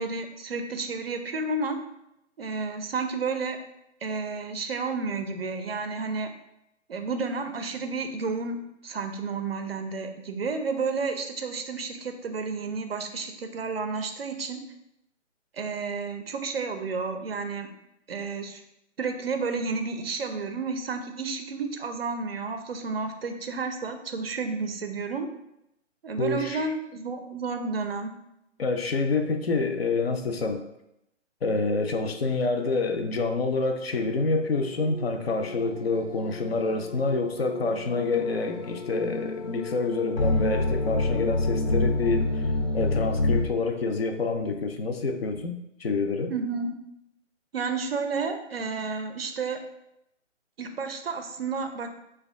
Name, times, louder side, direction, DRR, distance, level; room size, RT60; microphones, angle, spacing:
voice 1, 0.0-1.8 2.4-3.6 4.0-6.3 6.9-14.6 15.5-17.7 18.1-18.6 19.0-25.3 26.0-28.1 46.3-46.7 47.5-49.6 50.6-51.9, right 4 dB, 55° right, 6 dB, 0.4 m, -31 dB
voice 2, 26.2-26.7 28.6-30.6 31.4-42.4 42.7-46.3, left 3 dB, 55° left, 5 dB, 0.4 m, -27 dB
sound 1, 34.5-43.5, left 2 dB, 85° left, 0.8 m, -28 dB
3.2 x 2.2 x 3.5 m, 0.82 s
figure-of-eight pair, 140°, 37 cm